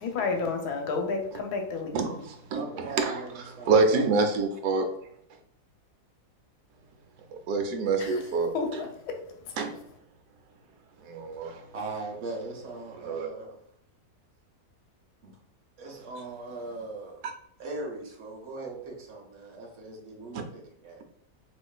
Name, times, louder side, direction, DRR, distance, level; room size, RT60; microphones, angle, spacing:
voice 1, 0.0-2.1 8.0-8.1 8.5-8.9, left 4 dB, 85° left, 3 dB, 1.2 m, -30 dB
voice 2, 1.9-3.2 3.7-4.8 7.5-8.8 9.6-9.8 11.0-11.6 13.1-13.3 20.3-20.4, right 4 dB, 85° right, 5 dB, 1.1 m, -26 dB
voice 3, 2.5-4.5 11.7-13.6 15.2-15.4 15.8-17.3 17.6-21.0, right 3 dB, 55° right, 0 dB, 0.9 m, -39 dB
4.4 x 2.4 x 2.2 m, 0.69 s
omnidirectional pair, 1.7 m